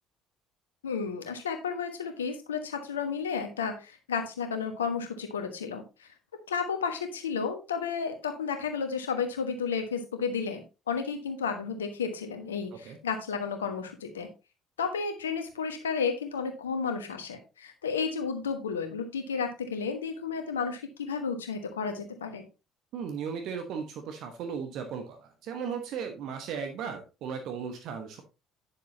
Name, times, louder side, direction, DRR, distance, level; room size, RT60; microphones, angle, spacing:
voice 1, 0.8-6.1 6.5-14.3 14.8-22.5, left 6 dB, 75° left, 6 dB, 1.2 m, -32 dB
voice 2, 22.9-28.2, right 6 dB, 55° right, 6 dB, 1.1 m, -36 dB
9.8 x 6.7 x 2.7 m, 0.29 s
figure-of-eight pair, 55°, 0 cm